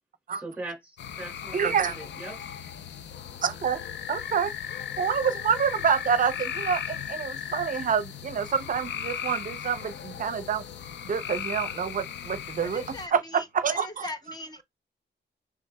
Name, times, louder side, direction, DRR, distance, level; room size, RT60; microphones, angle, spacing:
voice 1, 0.3-2.3, right 2 dB, 5° right, 2.3 m, -40 dB
sound 1, 1.0-13.1, left 9 dB, 70° left, 0.5 m, -37 dB
voice 2, 1.5-2.0 3.4-3.8 4.1-4.5 5.0-10.6 11.0-12.8 13.1-14.1, right 7 dB, 45° right, 0.6 m, -27 dB
voice 3, 12.6-14.6, left 2 dB, 20° left, 0.7 m, -40 dB
6.3 x 3.4 x 2.2 m
wide cardioid pair, 150°, 19 cm